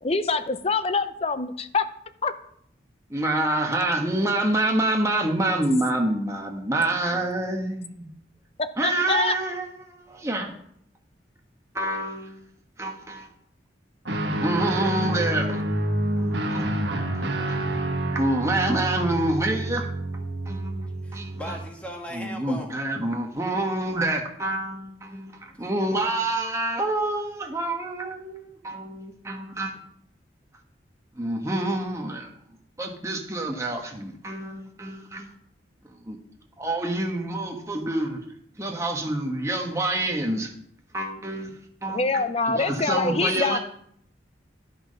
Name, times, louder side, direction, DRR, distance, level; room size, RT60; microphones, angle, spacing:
voice 1, 0.0-1.9 2.2-2.3 8.8-9.3 41.9-43.6, left 4 dB, 35° left, 11 dB, 0.6 m, -25 dB
voice 2, 3.1-8.1 8.8-10.5 11.7-12.4 12.8-13.3 14.4-15.8 16.2-16.7 17.1-17.7 18.1-19.9 20.5-21.6 22.1-29.8 31.2-32.3 32.8-35.3 35.9-36.2 36.6-38.2 38.6-40.5 40.9-41.5 41.8-43.6, right 1 dB, 15° right, 1 dB, 1.3 m, -27 dB
Guitar, 14.0-21.7, right 1 dB, 75° right, 1.3 m, -28 dB
voice 3, 21.0-22.8 25.4-25.6, equal, 5° left, 1 dB, 1.5 m, -37 dB
11.5 x 5.9 x 5.3 m, 0.69 s
head